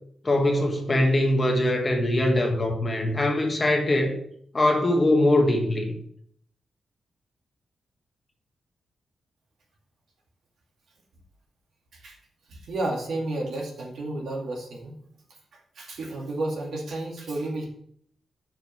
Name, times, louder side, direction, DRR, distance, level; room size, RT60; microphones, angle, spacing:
voice 1, 0.2-4.2 4.5-6.0, left 1 dB, 20° left, 1.2 m, -22 dB
voice 2, 12.5-14.9 15.5-17.7, right 2 dB, 70° right, 2.2 m, -32 dB
6.3 x 5.2 x 6.0 m
wide cardioid pair, 165°, 0 cm